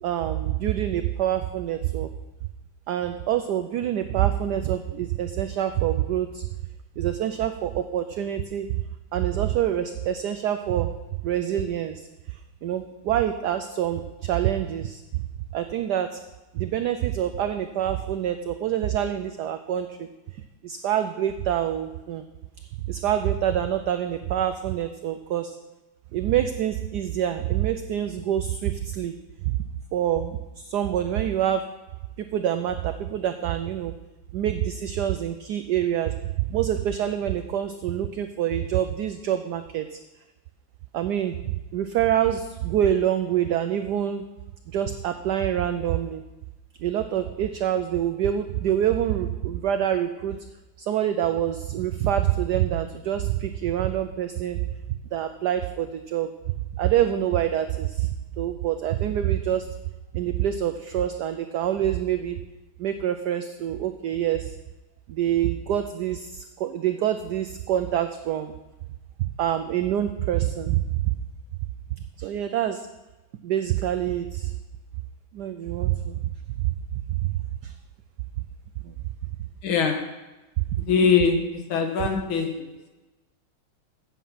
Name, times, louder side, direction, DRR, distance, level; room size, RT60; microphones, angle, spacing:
voice 1, 0.0-2.1 2.9-6.5 7.0-8.8 9.1-10.9 11.2-15.2 15.5-16.2 16.5-22.2 22.9-25.6 26.1-29.1 29.4-29.6 29.9-31.6 32.2-33.9 34.3-40.0 40.9-44.2 44.7-46.2 46.8-50.4 50.8-54.6 55.1-56.3 56.8-59.7 60.1-62.4 62.8-64.6 65.1-68.5 69.4-71.2 72.2-72.9 73.4-74.5 75.3-76.3 76.6-76.7 77.2-77.7 78.8-78.9 80.7-80.8, right 11 dB, 90° right, 8 dB, 0.9 m, -26 dB
voice 2, 79.6-80.0 80.9-81.4 81.7-82.7, left 5 dB, 75° left, 4 dB, 1.9 m, -22 dB
8.2 x 7.7 x 5.6 m, 1.1 s
omnidirectional pair, 2.3 m